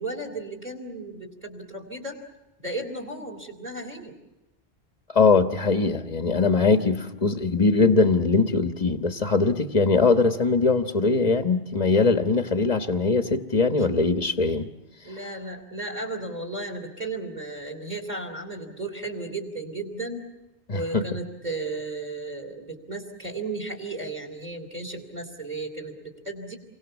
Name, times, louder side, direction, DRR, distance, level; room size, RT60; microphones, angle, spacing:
voice 1, 0.0-2.2 2.6-4.2 13.7-13.9 15.0-20.2 20.7-26.6, right 2 dB, 40° right, 6 dB, 3.8 m, -34 dB
voice 2, 5.1-14.7 20.7-21.0, left 4 dB, 35° left, 8 dB, 1.3 m, -21 dB
29.5 x 24.0 x 7.1 m, 0.98 s
omnidirectional pair, 1.2 m